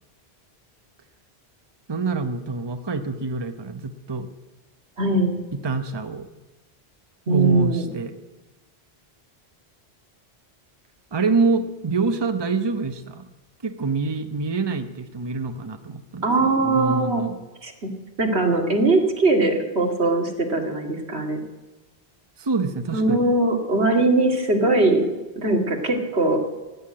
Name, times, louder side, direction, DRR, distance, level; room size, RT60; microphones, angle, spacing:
voice 1, 1.9-4.3 5.5-6.3 7.3-8.1 11.1-13.3 13.6-17.4 22.4-23.2, right 4 dB, 25° right, 8 dB, 0.9 m, -26 dB
voice 2, 5.0-5.4 7.3-7.9 16.2-17.2 17.6-17.9 18.2-21.4 22.9-25.0 25.4-26.4, right 2 dB, 80° right, 2 dB, 2.5 m, -21 dB
16.5 x 9.7 x 8.6 m, 1.2 s
omnidirectional pair, 1.1 m